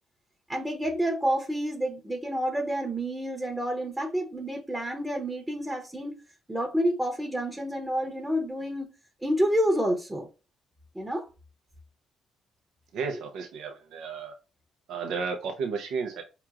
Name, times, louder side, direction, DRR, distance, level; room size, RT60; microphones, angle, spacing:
voice 1, 0.5-6.2 6.5-8.9 9.2-10.3 10.9-11.3, equal, 10° right, 0.8 m, -29 dB
voice 2, 12.9-14.3 14.9-16.2, right 5 dB, 85° right, 0.6 m, -33 dB
4.7 x 2.9 x 2.4 m
cardioid pair, 90°, 0 cm